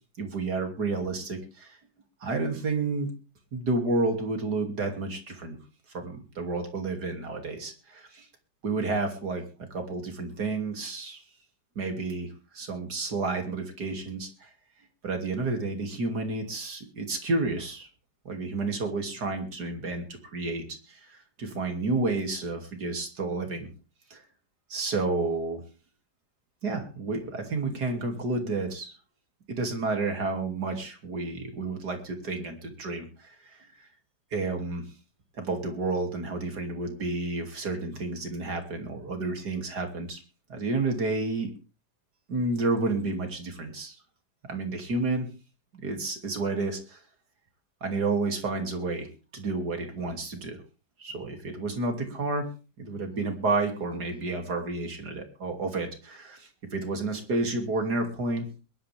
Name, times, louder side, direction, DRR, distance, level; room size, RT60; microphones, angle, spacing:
voice 1, 0.2-1.8 2.2-3.1 3.5-5.6 5.9-8.3 8.6-9.4 9.7-11.2 11.7-12.3 12.5-14.5 15.0-17.9 18.2-20.0 20.3-23.7 24.1-24.2 24.7-25.6 26.6-28.9 29.5-33.9 34.3-34.8 35.4-40.2 40.5-41.5 42.3-44.0 44.5-45.3 45.8-47.0 47.8-49.1 49.3-50.6 51.0-52.5 52.8-58.4, right 3 dB, 70° right, 5 dB, 3.4 m, -30 dB
21.5 x 12.0 x 3.5 m, 0.33 s
omnidirectional pair, 1.8 m